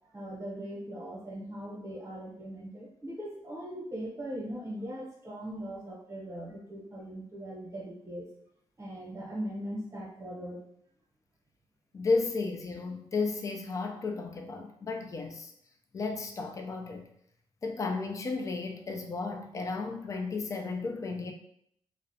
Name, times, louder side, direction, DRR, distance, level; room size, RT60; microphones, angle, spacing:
voice 1, 0.0-8.3 8.8-10.6, right 1 dB, 30° right, -3 dB, 0.8 m, -40 dB
voice 2, 11.9-15.5 15.9-17.1 17.6-21.3, left 3 dB, 35° left, 4 dB, 0.4 m, -33 dB
2.3 x 2.0 x 2.7 m, 0.72 s
cardioid pair, 105°, 10 cm